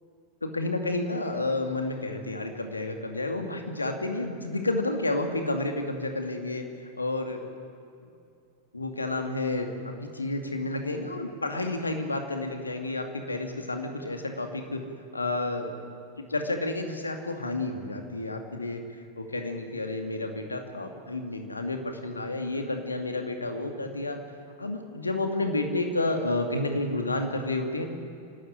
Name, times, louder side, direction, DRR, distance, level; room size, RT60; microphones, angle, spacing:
voice 1, 0.4-6.6 7.0-7.4 8.7-14.8 15.1-15.7 16.2-18.8 19.2-24.2 24.6-27.9, left 2 dB, 80° left, 5 dB, 2.3 m, -30 dB
27.0 x 13.0 x 10.0 m, 2.5 s
figure-of-eight pair, 90°, 0 cm